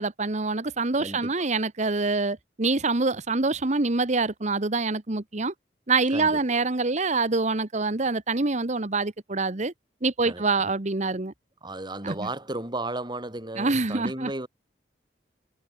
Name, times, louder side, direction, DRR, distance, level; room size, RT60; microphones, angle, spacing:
voice 1, 0.0-5.5 5.9-9.7 10.0-11.3 12.0-12.3 13.6-14.3, right 3 dB, 40° right, 1.3 m, -25 dB
voice 2, 1.0-1.5 6.1-6.4 10.2-10.7 11.6-14.5, right 2 dB, 25° right, 4.8 m, -34 dB
head